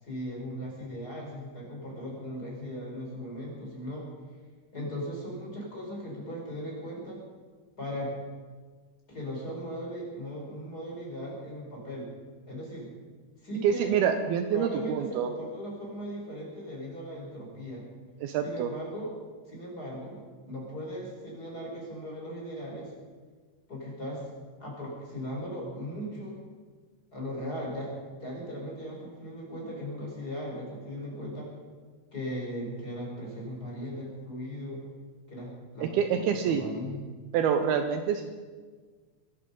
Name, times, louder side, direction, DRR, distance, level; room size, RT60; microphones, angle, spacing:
voice 1, 0.0-4.0 4.7-7.2 7.8-8.1 9.1-12.1 12.5-12.9 13.4-13.9 14.5-17.8 18.4-19.1 19.4-22.9 23.7-24.3 24.6-26.4 27.1-27.9 28.2-31.5 32.1-34.8 35.3-37.0, equal, 20° left, -3 dB, 4.5 m, -38 dB
voice 2, 13.6-15.3 18.2-18.7 35.8-36.6 37.3-38.3, right 7 dB, 80° right, 8 dB, 2.5 m, -27 dB
23.0 x 11.0 x 5.4 m, 1.5 s
omnidirectional pair, 4.9 m